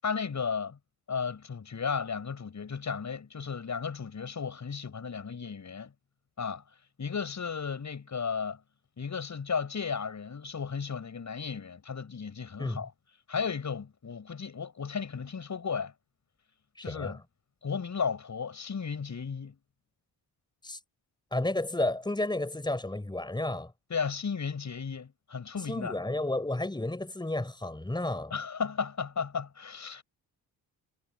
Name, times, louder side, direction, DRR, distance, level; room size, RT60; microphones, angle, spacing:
voice 1, 0.0-0.8 1.1-5.9 6.4-6.6 7.0-8.6 9.0-12.9 13.3-15.9 16.8-17.2 17.6-19.6 23.9-26.0 28.3-30.0, left 6 dB, 45° left, 7.5 m, -34 dB
voice 2, 16.8-17.2 20.6-20.8 21.3-23.7 25.7-28.3, left 2 dB, 10° left, 5.5 m, -32 dB
cardioid pair, 80°, 39 cm